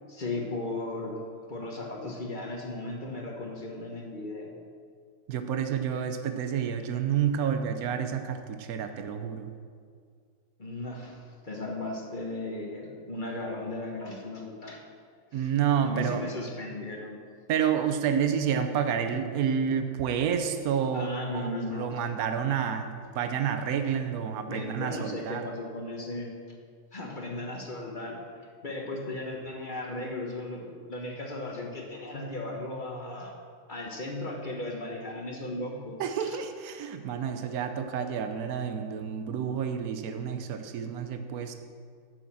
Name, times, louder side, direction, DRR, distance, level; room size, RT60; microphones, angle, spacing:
voice 1, 0.1-1.2 1.5-4.5 10.6-14.8 15.3-15.5 15.8-17.2 20.9-21.9 24.5-26.3 26.9-28.2 28.6-33.3 33.7-36.0, left 2 dB, 35° left, 0 dB, 0.9 m, -36 dB
voice 2, 5.3-9.5 15.3-16.2 17.5-25.5 36.0-41.5, right 8 dB, 85° right, 7 dB, 0.8 m, -29 dB
9.0 x 6.4 x 7.4 m, 2.1 s
omnidirectional pair, 2.4 m